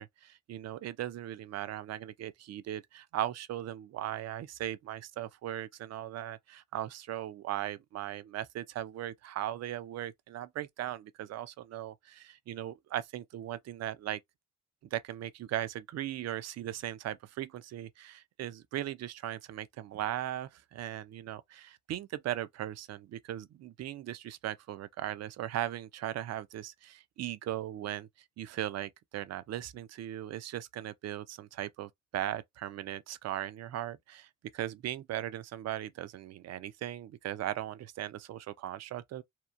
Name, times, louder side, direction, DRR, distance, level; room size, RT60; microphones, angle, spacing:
voice 1, 0.0-14.2 14.9-28.1 28.4-39.2, right 12 dB, 60° right, 0.5 m, -38 dB
2.9 x 2.2 x 2.4 m
cardioid pair, 90°, 30 cm